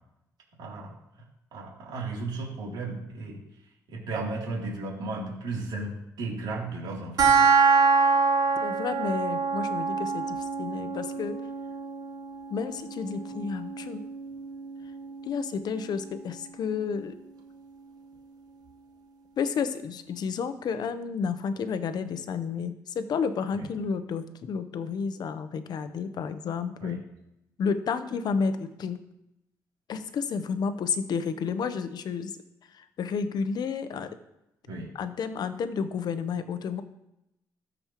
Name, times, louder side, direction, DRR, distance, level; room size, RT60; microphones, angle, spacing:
voice 1, 0.6-0.9 1.5-3.4 3.9-7.3 23.6-23.7 26.8-27.0 34.7-34.9, right 3 dB, 75° right, -3 dB, 3.1 m, -34 dB
sound 1, 7.2-18.2, right 5 dB, 60° right, 1.3 m, -27 dB
voice 2, 8.6-11.4 12.5-14.0 15.2-17.2 19.4-27.0 27.6-29.0 29.9-32.4 32.7-34.2 34.9-36.8, left 6 dB, 65° left, 11 dB, 0.8 m, -31 dB
14.0 x 5.3 x 3.0 m, 0.86 s
supercardioid pair, 70°, 8 cm